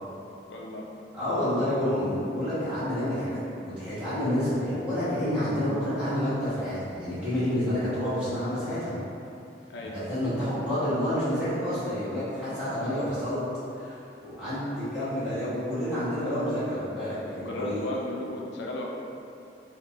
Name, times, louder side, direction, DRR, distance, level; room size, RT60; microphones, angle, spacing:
voice 1, 0.5-0.8 9.7-10.0 17.4-18.8, left 1 dB, 80° left, -2 dB, 0.4 m, -34 dB
voice 2, 1.1-9.0 9.9-13.4 13.8-14.0 14.2-17.8, equal, 5° right, -15 dB, 1.3 m, -29 dB
4.3 x 2.2 x 2.9 m, 2.8 s
head